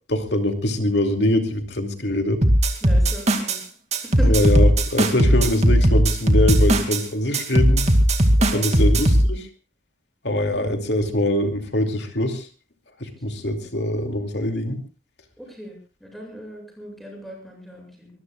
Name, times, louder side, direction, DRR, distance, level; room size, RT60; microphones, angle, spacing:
voice 1, 0.1-2.4 4.2-7.8 8.5-9.5 10.2-12.5 13.0-14.8, left 1 dB, 60° left, 5 dB, 2.7 m, -23 dB
sound 1, 2.4-3.6 3.9-7.0 7.3-9.3, right 1 dB, 35° right, 2.5 m, -17 dB
voice 2, 2.8-3.6 4.0-4.4 8.4-8.8 13.6-13.7 15.4-18.1, equal, ahead, 1 dB, 7.8 m, -38 dB
25.0 x 20.5 x 2.4 m, 0.34 s
head